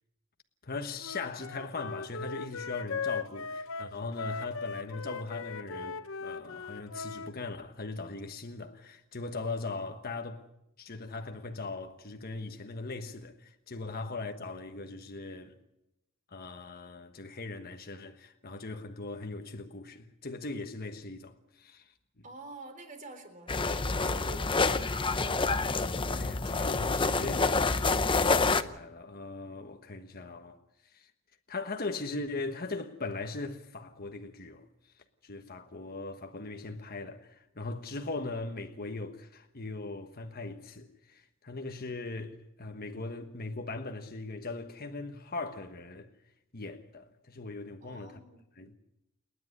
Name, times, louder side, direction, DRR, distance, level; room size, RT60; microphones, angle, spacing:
voice 1, 0.6-10.4 10.8-15.5 16.3-22.2 26.1-27.5 28.1-30.6 30.8-31.1 31.5-34.7 35.2-46.1 46.5-48.2 48.6-48.8, left 3 dB, 40° left, 1.3 m, -39 dB
Wind instrument woodwind instrument, 1.0-7.3, left 5 dB, 65° left, 0.9 m, -39 dB
voice 2, 22.2-24.9 47.8-48.4, right 2 dB, 35° right, 3.9 m, -48 dB
sound 1, 23.5-28.6, left 3 dB, 20° left, 0.7 m, -27 dB
29.0 x 10.5 x 9.8 m
head